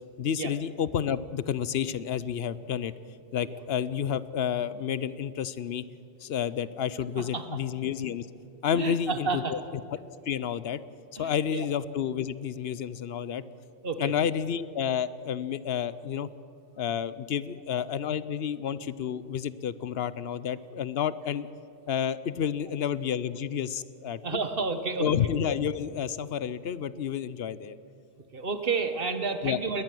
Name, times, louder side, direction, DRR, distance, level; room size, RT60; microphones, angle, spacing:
voice 1, 0.2-2.9 3.3-5.8 6.2-8.3 8.6-9.8 10.3-10.8 11.2-13.4 14.0-16.3 16.8-21.5 21.9-24.2 25.0-27.8 29.4-29.6, left 8 dB, 75° left, 17 dB, 0.9 m, -30 dB
voice 2, 7.2-7.6 8.7-9.6 11.2-11.7 13.8-14.1 24.2-25.1 28.3-29.8, right 4 dB, 65° right, 8 dB, 1.6 m, -31 dB
20.0 x 20.0 x 7.7 m, 2.6 s
omnidirectional pair, 1.0 m